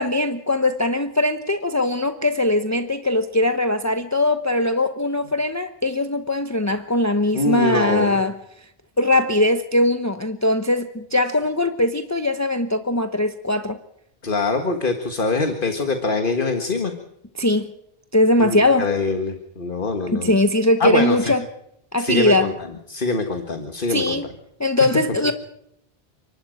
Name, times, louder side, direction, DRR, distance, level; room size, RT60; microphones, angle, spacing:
voice 1, 0.0-8.4 9.0-13.8 17.3-17.7 18.1-18.9 20.1-21.4 21.9-22.5 23.9-24.3 24.6-25.3, left 1 dB, 15° left, 8 dB, 1.0 m, -20 dB
voice 2, 7.3-8.2 14.2-16.9 18.4-20.3 20.8-21.3 22.0-22.5 22.9-24.2, left 3 dB, 55° left, 6 dB, 1.9 m, -23 dB
29.0 x 12.0 x 9.1 m, 0.79 s
omnidirectional pair, 1.0 m